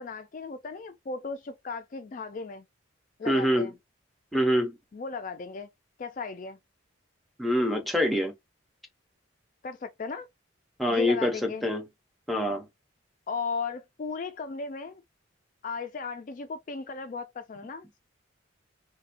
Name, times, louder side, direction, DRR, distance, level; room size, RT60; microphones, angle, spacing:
voice 1, 0.0-2.6 3.2-3.7 4.9-5.7 6.0-6.6 9.6-10.3 10.9-11.6 13.3-15.0 15.6-18.0, left 4 dB, 40° left, 0.3 m, -36 dB
voice 2, 3.3-3.7 4.3-4.7 7.4-8.3 10.8-11.8 12.3-12.7, equal, ahead, 0.6 m, -25 dB
4.1 x 2.2 x 2.5 m
head